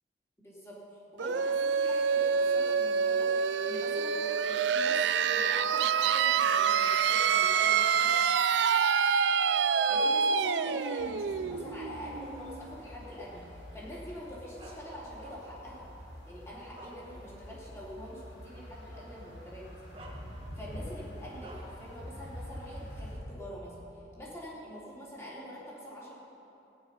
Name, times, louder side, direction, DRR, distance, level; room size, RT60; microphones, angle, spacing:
voice 1, 0.4-0.8 1.1-5.0 5.3-8.1 9.9-15.9 16.2-19.8 20.5-23.8 24.2-26.2, equal, 15° left, -6 dB, 3.0 m, -45 dB
sound 1, 1.2-12.7, right 6 dB, 80° right, 0.4 m, -27 dB
sound 2, 11.0-23.2, equal, 85° left, 3.5 m, -47 dB
Bark, 14.6-15.7 16.3-17.5 17.9-18.1 19.2-19.4 19.9-20.7 21.4-21.8, right 1 dB, 30° right, 1.4 m, -50 dB
16.5 x 9.9 x 5.6 m, 3.0 s
head